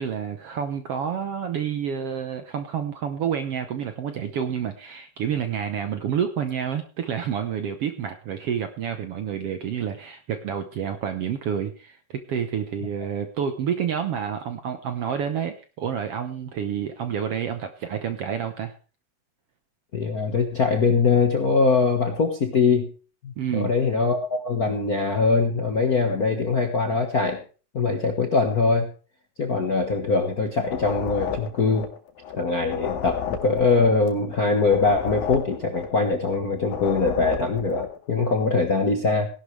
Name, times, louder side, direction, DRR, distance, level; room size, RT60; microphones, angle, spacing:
voice 1, 0.0-18.7 23.4-23.7, right 8 dB, 70° right, 8 dB, 1.4 m, -29 dB
voice 2, 19.9-22.9 23.2-27.4 27.7-28.9 29.4-31.9 32.4-39.3, left 4 dB, 55° left, 3 dB, 1.0 m, -22 dB
sound 1, 30.6-32.4 32.6-36.4 36.6-38.0, left 8 dB, 90° left, 3.6 m, -32 dB
17.5 x 11.5 x 3.3 m, 0.36 s
omnidirectional pair, 3.9 m